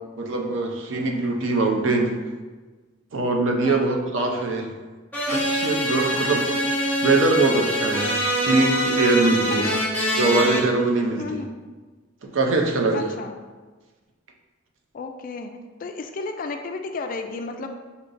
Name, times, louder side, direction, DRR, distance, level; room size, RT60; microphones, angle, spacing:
voice 1, 0.2-2.2 3.1-4.7 5.3-9.7 10.2-11.4 12.3-13.1, right 3 dB, 70° right, 2 dB, 0.6 m, -22 dB
sound 1, 5.1-10.6, equal, 10° left, 0.7 m, -24 dB
voice 2, 9.6-10.0 11.2-11.6 12.9-13.3 14.9-15.5 15.8-17.7, left 3 dB, 45° left, 6 dB, 0.3 m, -33 dB
6.0 x 2.8 x 2.5 m, 1.3 s
head